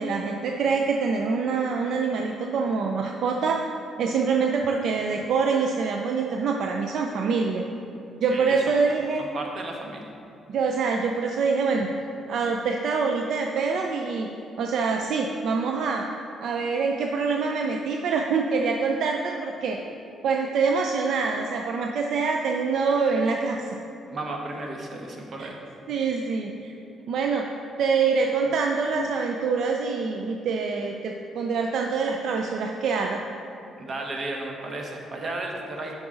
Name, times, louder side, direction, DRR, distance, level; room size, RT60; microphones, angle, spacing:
voice 1, 0.0-3.6 4.0-7.6 8.2-9.2 10.5-11.9 12.3-14.3 14.6-16.0 16.4-19.8 20.2-23.7 25.4-25.5 25.9-26.7 27.1-27.5 27.8-33.2, right 5 dB, 70° right, 2 dB, 0.4 m, -25 dB
voice 2, 8.3-8.6 9.2-10.1 24.1-25.6 33.8-35.9, right 2 dB, 45° right, 1 dB, 1.1 m, -34 dB
7.7 x 5.9 x 3.8 m, 2.7 s
cardioid pair, 90°, 0 cm